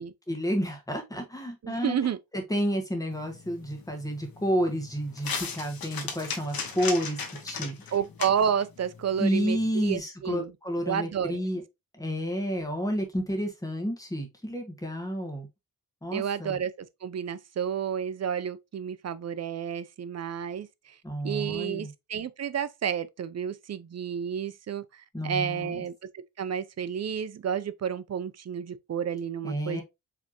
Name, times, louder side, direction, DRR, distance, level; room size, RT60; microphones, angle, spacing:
voice 1, 0.3-2.0 2.3-7.9 9.2-11.6 11.9-15.5 16.0-16.6 21.0-21.9 25.1-25.8 29.4-29.8, equal, 10° left, 1.5 m, -30 dB
voice 2, 1.6-2.2 7.9-10.5 10.8-11.5 16.1-21.0 21.2-29.8, right 8 dB, 50° right, 0.5 m, -31 dB
sound 1, 3.1-10.0, left 5 dB, 80° left, 1.2 m, -38 dB
5.0 x 3.4 x 2.8 m
wide cardioid pair, 125°, 35 cm